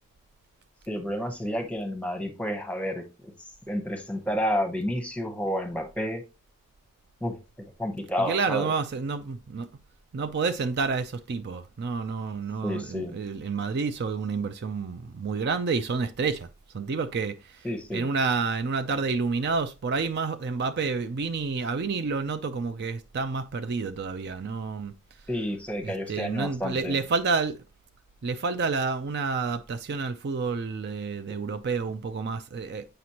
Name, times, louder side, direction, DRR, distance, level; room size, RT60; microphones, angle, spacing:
voice 1, 0.9-6.2 7.2-7.4 7.8-8.7 12.6-13.1 17.6-18.1 25.3-27.0, equal, 5° left, 0.9 m, -30 dB
voice 2, 8.2-9.7 10.1-16.5 16.7-17.7 17.9-24.9 25.8-27.6 28.2-32.9, right 4 dB, 50° right, 0.4 m, -29 dB
7.8 x 5.1 x 2.8 m
head